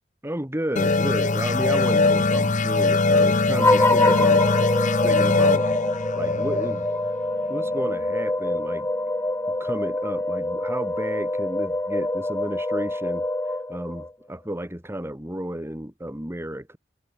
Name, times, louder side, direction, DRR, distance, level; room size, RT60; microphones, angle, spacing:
voice 1, 0.2-5.7 6.1-6.9 7.5-8.9 9.6-13.2 13.7-16.8, right 1 dB, 15° right, 2.5 m, -32 dB
sound 1, 0.8-8.0, left 3 dB, 45° left, 1.1 m, -22 dB
sound 2, 3.6-14.1, left 2 dB, 15° left, 1.2 m, -25 dB
head